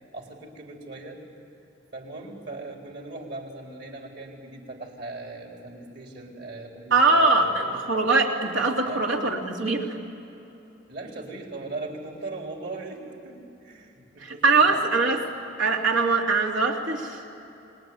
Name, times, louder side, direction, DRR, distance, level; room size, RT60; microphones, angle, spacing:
voice 1, 0.1-1.2 1.9-7.8 8.8-9.0 10.9-14.8, right 2 dB, 60° right, 1 dB, 4.2 m, -39 dB
voice 2, 6.9-9.9 14.2-15.2 15.6-17.2, right 3 dB, 80° right, 1 dB, 3.0 m, -22 dB
27.5 x 20.5 x 9.5 m, 3.0 s
head